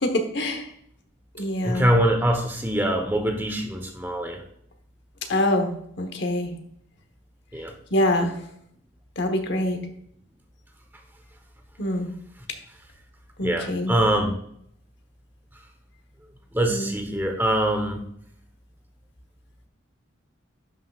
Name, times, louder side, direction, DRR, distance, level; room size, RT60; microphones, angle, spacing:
voice 1, 0.0-0.7 1.4-1.9 5.3-5.7 6.0-6.5 7.9-8.3 9.2-9.8 11.8-12.1 13.4-13.9 16.7-16.9, left 1 dB, 55° left, 6 dB, 1.1 m, -24 dB
voice 2, 1.6-4.4 7.5-7.7 13.4-14.3 16.5-18.0, right 1 dB, 10° right, 3 dB, 1.0 m, -23 dB
11.5 x 5.7 x 2.4 m, 0.70 s
head